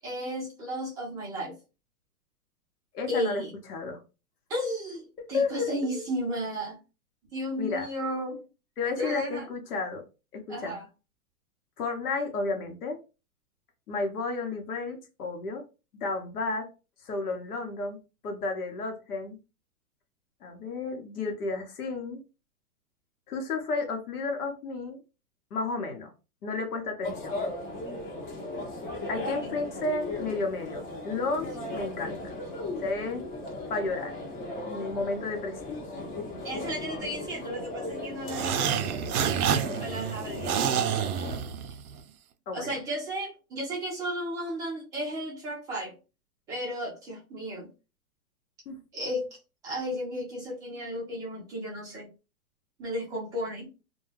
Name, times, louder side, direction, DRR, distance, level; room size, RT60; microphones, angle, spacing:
voice 1, 0.0-1.5 3.1-3.5 4.5-6.8 7.3-8.4 9.0-9.5 10.5-10.9 29.3-29.6 36.4-39.4 39.8-40.9 42.5-45.9 46.5-47.7 48.9-52.1 52.8-53.7, equal, 10° right, -5 dB, 0.4 m, -34 dB
voice 2, 2.9-3.4 3.7-4.0 5.3-5.9 7.6-7.9 8.8-10.0 10.3-10.8 11.8-13.0 13.9-15.6 15.9-16.7 17.0-18.0 18.2-19.4 20.4-22.2 23.3-25.0 25.5-26.1 26.4-27.4 29.1-32.3 32.8-33.2 33.7-34.2 34.7-35.9 42.5-42.7 48.7-48.8, left 3 dB, 75° left, 5 dB, 1.0 m, -32 dB
sound 1, 27.0-41.4, left 1 dB, 30° left, 0.9 m, -37 dB
sound 2, 38.3-42.0, right 8 dB, 75° right, 0.5 m, -28 dB
2.2 x 2.2 x 3.1 m, 0.30 s
hypercardioid pair, 140°, 45 cm